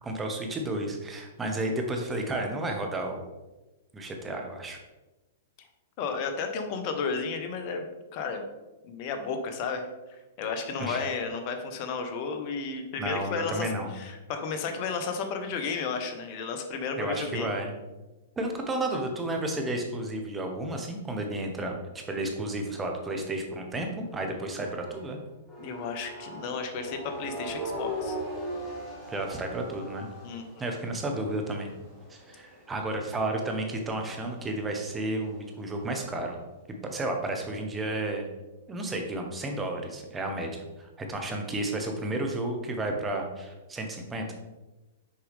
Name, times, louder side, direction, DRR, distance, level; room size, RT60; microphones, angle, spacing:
voice 1, 0.0-3.3 3.9-4.8 10.8-11.1 13.0-13.9 17.0-17.7 18.4-25.2 29.1-30.1 30.6-31.7 32.1-36.4 36.8-38.3 38.7-44.3, right 1 dB, 15° right, 3 dB, 1.2 m, -32 dB
voice 2, 6.0-8.4 8.8-17.5 25.6-28.2 30.2-30.5, left 5 dB, 45° left, 6 dB, 1.0 m, -33 dB
sound 1, 22.3-25.1 25.5-35.9, equal, 5° left, 1.9 m, -41 dB
6.6 x 4.7 x 3.6 m, 1.1 s
hypercardioid pair, 115°, 0 cm